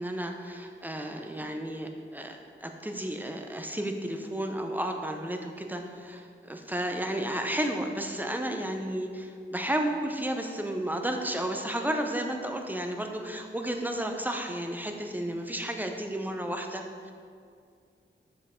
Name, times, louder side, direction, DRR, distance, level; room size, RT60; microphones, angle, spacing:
voice 1, 0.0-17.1, right 1 dB, 10° right, 3 dB, 0.7 m, -32 dB
7.2 x 7.1 x 3.7 m, 2.2 s
wide cardioid pair, 75°, 21 cm